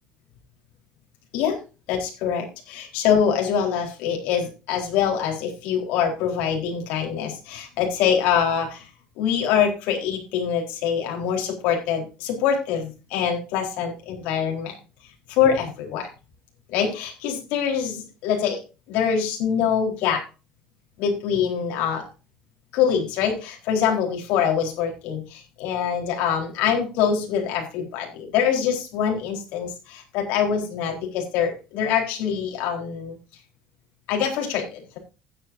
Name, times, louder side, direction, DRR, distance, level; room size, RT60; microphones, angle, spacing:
voice 1, 1.9-8.9 9.2-14.8 15.3-16.1 16.7-18.6 18.9-20.2 21.0-22.0 22.7-33.2 34.1-35.0, left 8 dB, 70° left, 1 dB, 4.1 m, -24 dB
16.0 x 9.3 x 2.7 m, 0.31 s
cardioid pair, 155°, 3 cm